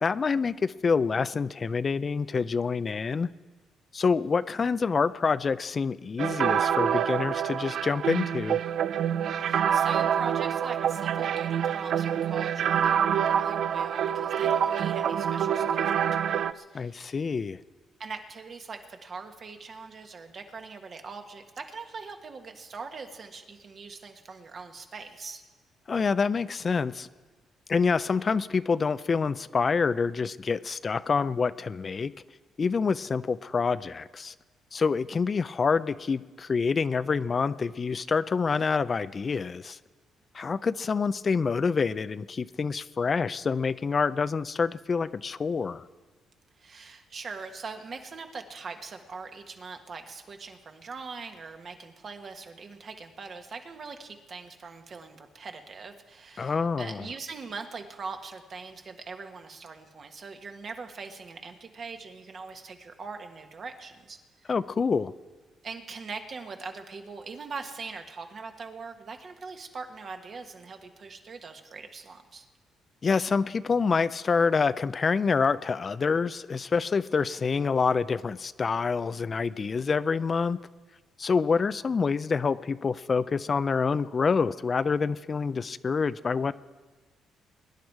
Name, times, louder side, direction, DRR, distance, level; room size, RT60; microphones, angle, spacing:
voice 1, 0.0-3.3 3.9-8.6 16.7-17.6 25.9-27.1 27.7-32.1 32.6-34.3 34.7-39.8 40.3-45.9 56.4-57.1 64.5-65.1 73.0-80.6 81.2-86.5, left 5 dB, 40° left, 15 dB, 0.4 m, -27 dB
sound 1, 6.2-16.5, right 8 dB, 65° right, 0.4 m, -26 dB
voice 2, 9.3-17.1 18.0-25.4 46.6-64.5 65.6-72.5, right 4 dB, 50° right, 5 dB, 1.5 m, -42 dB
22.5 x 10.5 x 4.7 m, 1.3 s
cardioid pair, 90°, 0 cm